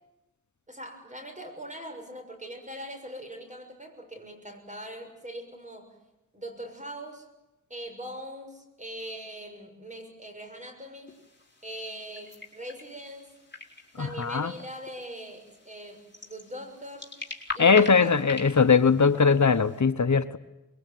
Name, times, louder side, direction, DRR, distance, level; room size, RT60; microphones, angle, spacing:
voice 1, 0.7-6.0 6.3-7.3 7.7-11.1 11.6-13.3 14.0-17.1 17.5-18.2, equal, 25° right, 4 dB, 6.6 m, -41 dB
sound 1, 11.1-19.8, left 3 dB, 35° left, 4.7 m, -43 dB
voice 2, 14.0-14.5 17.6-20.4, left 5 dB, 65° left, 11 dB, 1.0 m, -20 dB
25.5 x 22.5 x 9.2 m, 0.96 s
wide cardioid pair, 80°, 31 cm